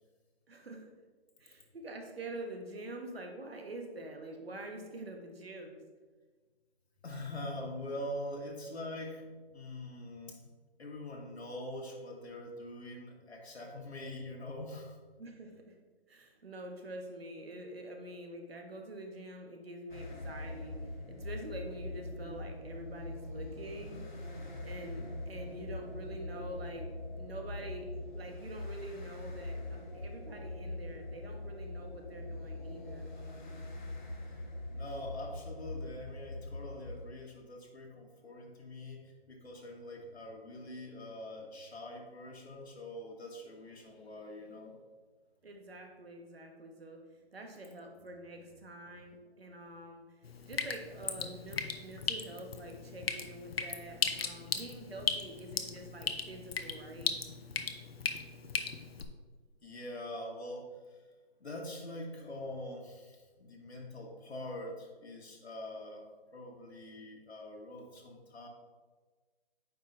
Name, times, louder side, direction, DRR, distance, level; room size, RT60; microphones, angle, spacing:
voice 1, 0.5-0.9 1.4-5.8 15.2-15.8 16.1-24.3 24.6-33.1 45.4-47.0 47.3-50.0 50.5-57.2, right 1 dB, 65° right, 3 dB, 1.4 m, -46 dB
voice 2, 7.0-10.5 10.8-15.0 34.7-44.8 59.6-61.1 61.4-66.0 66.3-68.5, left 1 dB, 85° left, 0 dB, 1.6 m, -44 dB
sound 1, 19.9-37.1, left 2 dB, 50° left, 1.2 m, -42 dB
Drip, 50.2-59.0, left 5 dB, 70° left, 0.7 m, -37 dB
8.8 x 4.9 x 2.6 m, 1.4 s
figure-of-eight pair, 160°, 32 cm